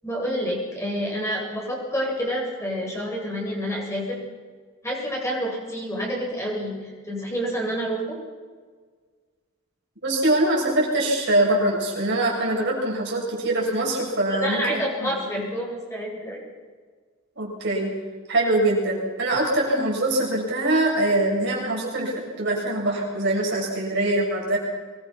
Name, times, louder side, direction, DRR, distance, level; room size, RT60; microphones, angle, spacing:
voice 1, 0.0-4.2 4.8-6.7 7.0-8.2 14.4-16.4, equal, 15° left, -3 dB, 7.5 m, -28 dB
voice 2, 10.0-15.2 17.4-17.9 18.3-22.1 22.4-24.6, right 1 dB, 55° right, -3 dB, 7.1 m, -23 dB
24.5 x 22.5 x 6.0 m, 1.5 s
head